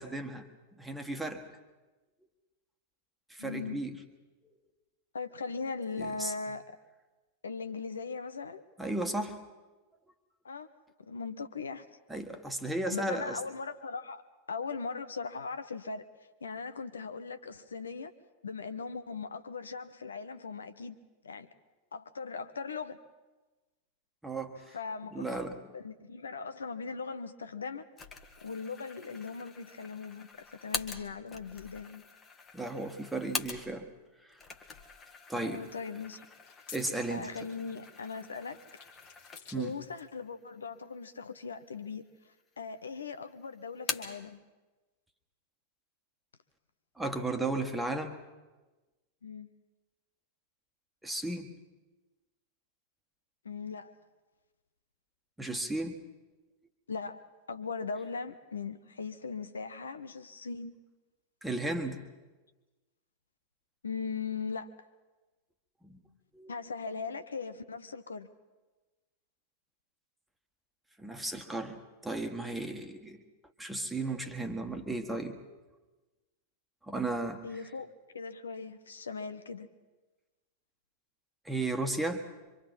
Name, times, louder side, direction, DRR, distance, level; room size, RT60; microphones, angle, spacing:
voice 1, 0.0-1.4 3.3-4.0 6.0-6.3 8.8-9.4 12.1-13.4 24.2-24.8 25.1-25.6 32.5-33.9 34.2-34.4 35.3-35.6 36.7-37.3 39.5-39.8 47.0-48.2 51.0-51.5 55.4-56.0 61.4-62.0 65.8-66.0 66.3-66.5 71.0-73.2 73.6-75.4 76.9-77.4 81.4-82.2, right 2 dB, 5° right, 5 dB, 1.6 m, -35 dB
voice 2, 3.4-3.8 5.1-6.6 7.4-8.6 10.4-10.7 11.0-11.9 12.9-16.1 16.4-18.1 18.4-21.0 21.2-21.5 21.9-23.0 24.7-25.4 25.7-27.8 28.4-30.3 30.6-32.0 35.4-36.3 37.1-38.7 39.5-44.4 49.2-49.5 53.4-54.0 56.9-60.8 63.8-64.7 66.5-68.3 77.4-79.7, left 5 dB, 70° left, 10 dB, 0.8 m, -39 dB
sound 1, 28.0-34.0 34.3-39.8 40.2-40.3 41.1-41.8 42.1-42.9 43.2-44.3, left 5 dB, 25° left, 1.6 m, -43 dB
sound 2, 34.8-34.9 36.2-40.1, left 6 dB, 55° left, 4.0 m, -53 dB
25.0 x 25.0 x 4.3 m, 1.2 s
figure-of-eight pair, 90°, 0 cm